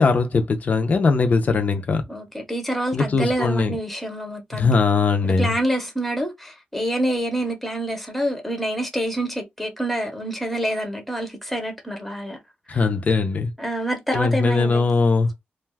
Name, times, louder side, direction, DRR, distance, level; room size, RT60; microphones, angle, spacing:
voice 1, 0.0-2.0 2.9-3.7 4.5-5.5 12.7-13.5 14.1-15.3, left 4 dB, 45° left, 0.5 m, -20 dB
voice 2, 2.1-4.7 5.2-12.4 12.7-12.8 13.6-14.9, right 1 dB, ahead, 0.7 m, -27 dB
2.4 x 2.2 x 3.3 m
wide cardioid pair, 140°, 4 cm